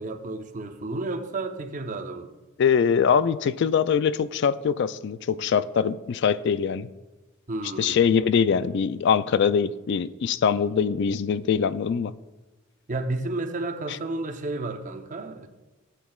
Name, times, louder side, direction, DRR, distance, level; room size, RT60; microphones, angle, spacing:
voice 1, 0.0-2.3 7.5-8.0 12.9-15.5, right 2 dB, 40° right, 0.7 m, -32 dB
voice 2, 2.6-6.9 7.8-12.1, left 7 dB, 60° left, 0.3 m, -23 dB
17.5 x 8.3 x 2.4 m
head